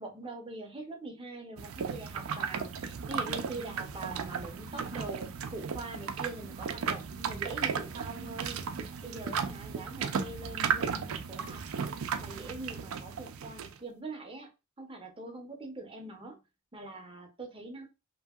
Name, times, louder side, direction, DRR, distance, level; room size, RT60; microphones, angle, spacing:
voice 1, 0.0-8.6 9.0-11.6 12.2-14.5 14.8-16.4 16.7-17.9, right 2 dB, 25° right, 2 dB, 0.6 m, -43 dB
sound 1, 1.6-13.8, right 6 dB, 70° right, 0.4 m, -35 dB
2.7 x 2.7 x 2.3 m, 0.27 s
head